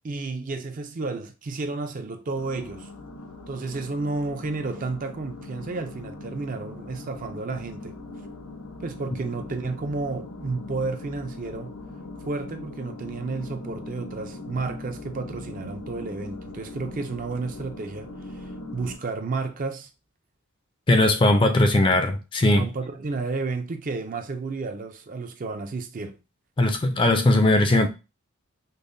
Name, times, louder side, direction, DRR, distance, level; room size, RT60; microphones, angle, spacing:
voice 1, 0.0-2.9 3.5-8.0 8.8-11.7 12.3-18.1 18.3-19.9 22.5-26.2, right 3 dB, 40° right, 0.4 m, -32 dB
sound 1, 2.3-19.0, left 2 dB, 90° left, 0.8 m, -40 dB
voice 2, 20.9-22.7 26.6-27.9, left 1 dB, 25° left, 0.4 m, -19 dB
5.3 x 2.1 x 2.5 m
head